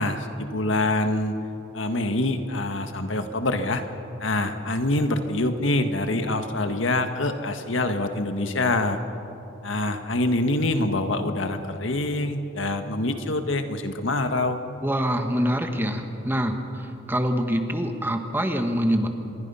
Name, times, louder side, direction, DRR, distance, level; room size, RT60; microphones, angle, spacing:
voice 1, 0.0-1.3 1.7-3.8 4.2-9.0 9.6-14.6, left 2 dB, 80° left, 7 dB, 1.6 m, -25 dB
voice 2, 14.8-19.1, equal, 10° right, 5 dB, 1.5 m, -25 dB
26.0 x 22.0 x 5.7 m, 2.9 s
head